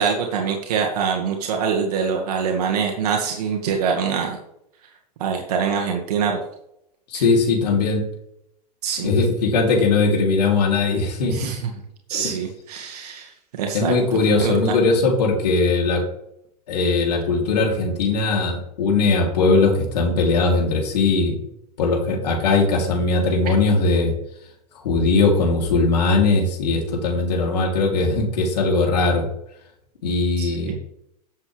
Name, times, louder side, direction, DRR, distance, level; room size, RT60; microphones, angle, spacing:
voice 1, 0.0-4.4 5.2-6.4 7.1-7.2 8.8-9.1 11.3-11.7 12.1-13.9 14.4-14.8 30.4-30.7, right 6 dB, 65° right, 1 dB, 1.9 m, -24 dB
voice 2, 7.1-8.1 9.0-11.5 12.1-12.4 13.7-16.1 16.7-21.4 21.8-24.1 24.8-29.3 30.0-30.7, left 3 dB, 75° left, 1 dB, 3.1 m, -20 dB
11.5 x 7.7 x 3.3 m, 0.77 s
hypercardioid pair, 115°, 21 cm